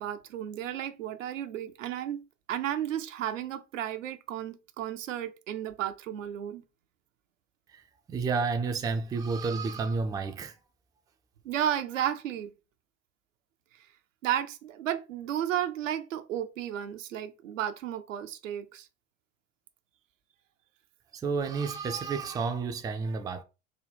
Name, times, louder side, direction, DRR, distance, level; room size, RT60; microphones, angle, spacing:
voice 1, 0.0-6.6 11.4-12.5 14.2-18.9, right 10 dB, 75° right, 0.5 m, -33 dB
voice 2, 8.1-10.5 21.1-23.4, right 4 dB, 10° right, 0.3 m, -30 dB
3.9 x 2.2 x 3.3 m
figure-of-eight pair, 65°, 38 cm